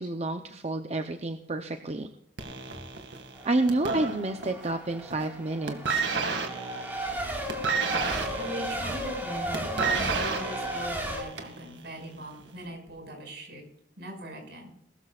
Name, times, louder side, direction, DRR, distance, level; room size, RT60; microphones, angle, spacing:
voice 1, 0.0-2.1 3.4-6.0, right 2 dB, 35° right, 6 dB, 0.7 m, -29 dB
sound 1, 2.4-4.7 5.0-5.4 5.7-11.6 12.5-12.6, right 4 dB, 80° right, 2.1 m, -31 dB
Race car auto racing / Accelerating revving vroom / Mechanisms, 3.3-11.2, equal, 10° right, 4.1 m, -35 dB
voice 2, 8.4-9.7 10.0-13.6 14.0-14.7, right 1 dB, 65° right, 2 dB, 5.8 m, -40 dB
20.5 x 13.0 x 2.5 m, 0.75 s
head